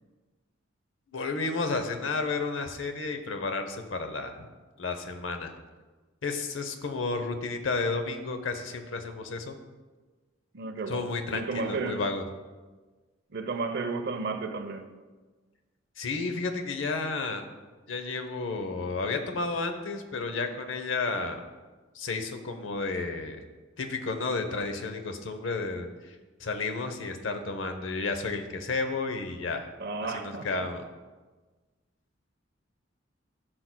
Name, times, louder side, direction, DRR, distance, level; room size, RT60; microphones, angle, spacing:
voice 1, 1.1-4.5 4.8-5.5 6.2-9.5 10.9-12.2 16.0-17.4 17.9-21.4 21.9-23.4 23.8-26.1 26.4-29.7 30.1-30.8, left 3 dB, 70° left, 0.8 m, -32 dB
voice 2, 10.5-12.1 13.3-15.0 29.8-30.7, right 3 dB, 55° right, 0.6 m, -33 dB
12.0 x 6.0 x 2.2 m
head